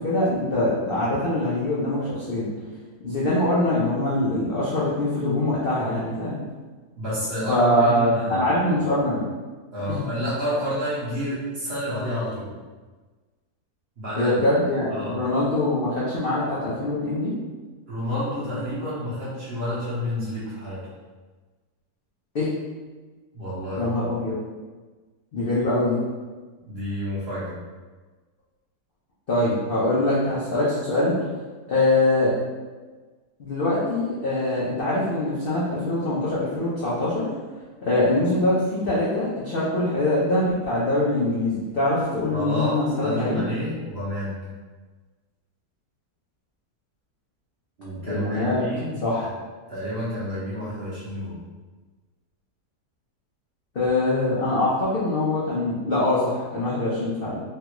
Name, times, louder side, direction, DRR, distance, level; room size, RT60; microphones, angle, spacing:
voice 1, 0.0-2.5 3.0-6.4 7.5-9.3 9.9-10.0 14.2-17.3 22.3-22.5 23.8-24.4 25.3-26.0 29.3-31.1 31.7-32.3 33.4-37.3 37.8-43.4 48.1-48.6 49.0-49.3 53.7-57.4, left 1 dB, 60° left, -9 dB, 0.6 m, -23 dB
voice 2, 7.0-8.4 9.7-12.5 14.0-14.3 14.9-15.2 17.9-20.8 23.3-23.9 26.7-27.5 42.3-42.7 43.0-44.4 47.8-49.3 49.7-51.4, equal, 50° right, -9 dB, 0.9 m, -29 dB
3.3 x 2.3 x 2.9 m, 1.3 s
omnidirectional pair, 1.8 m